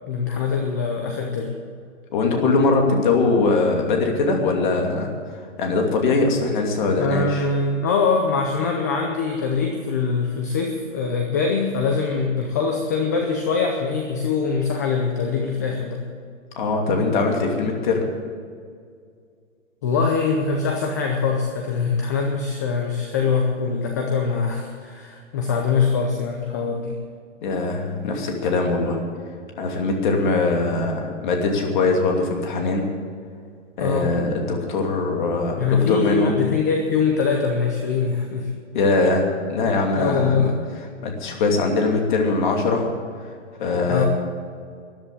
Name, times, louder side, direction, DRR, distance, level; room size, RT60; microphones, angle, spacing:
voice 1, 0.1-1.5 7.0-16.0 19.8-27.0 33.8-34.1 35.6-38.5 40.0-40.6 43.9-44.0, left 5 dB, 15° left, 2 dB, 0.6 m, -23 dB
voice 2, 2.1-5.1 5.6-7.4 16.6-18.0 27.4-29.0 29.6-32.8 33.8-36.4 38.7-40.4 41.0-42.9 43.6-44.0, left 3 dB, 40° left, 2 dB, 2.7 m, -21 dB
13.5 x 10.5 x 8.4 m, 2.2 s
hypercardioid pair, 165°, 37 cm